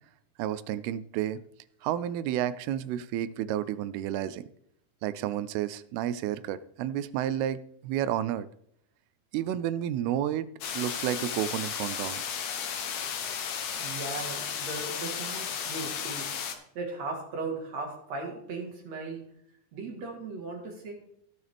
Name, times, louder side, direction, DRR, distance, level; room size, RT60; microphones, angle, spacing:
voice 1, 0.4-1.4 1.8-4.5 5.0-8.5 9.3-10.5 10.7-12.2, right 11 dB, 85° right, 15 dB, 2.5 m, -31 dB
sound 1, 10.6-16.6, left 7 dB, 80° left, 1.5 m, -34 dB
voice 2, 13.8-16.4 16.7-19.3 19.7-20.9, right 3 dB, 55° right, 1 dB, 2.5 m, -37 dB
17.0 x 6.4 x 3.5 m, 0.72 s
omnidirectional pair, 4.5 m